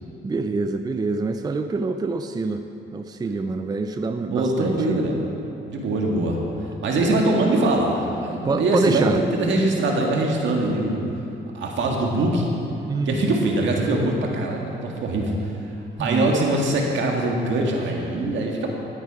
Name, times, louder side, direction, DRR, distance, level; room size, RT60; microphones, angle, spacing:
voice 1, 0.2-2.6 2.9-5.0 8.4-9.2 12.8-13.3 16.0-16.3, right 3 dB, 20° right, 8 dB, 0.4 m, -26 dB
voice 2, 4.3-5.2 5.7-6.4 6.8-11.0 11.5-12.6 13.1-15.3 16.0-18.7, right 2 dB, 70° right, 0 dB, 1.9 m, -22 dB
12.0 x 9.3 x 4.8 m, 2.8 s
cardioid pair, 90°, 20 cm